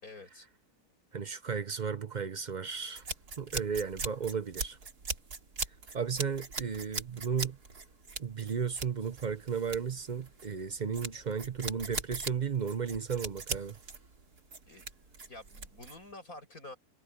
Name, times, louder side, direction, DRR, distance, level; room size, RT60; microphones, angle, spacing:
voice 1, 0.0-0.5 3.5-3.7 14.7-14.9 15.3-16.8, left 2 dB, 65° left, 8.3 m, -49 dB
voice 2, 1.1-3.0 3.4-4.8 5.9-7.6 8.2-13.8, right 6 dB, 45° right, 0.6 m, -34 dB
sound 1, 3.0-16.1, right 4 dB, 90° right, 3.2 m, -40 dB
omnidirectional pair, 1.6 m